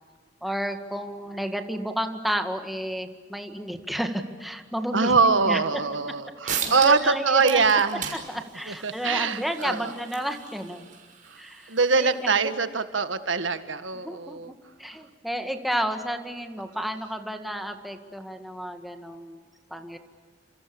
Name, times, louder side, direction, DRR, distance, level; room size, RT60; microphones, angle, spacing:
voice 1, 0.4-5.2 5.5-5.6 6.4-7.6 7.9-8.0 8.3-10.9 11.4-12.5 13.9-14.5 14.8-19.4 19.7-20.0, equal, ahead, 5 dB, 1.9 m, -31 dB
voice 2, 4.9-8.1 8.7-9.9 11.3-11.4 11.7-14.5, right 4 dB, 80° right, 10 dB, 1.7 m, -23 dB
sound 1, 6.1-6.2 6.5-7.1 7.4-12.5, right 7 dB, 45° right, 6.4 m, -37 dB
30.0 x 27.0 x 7.1 m, 1.5 s
head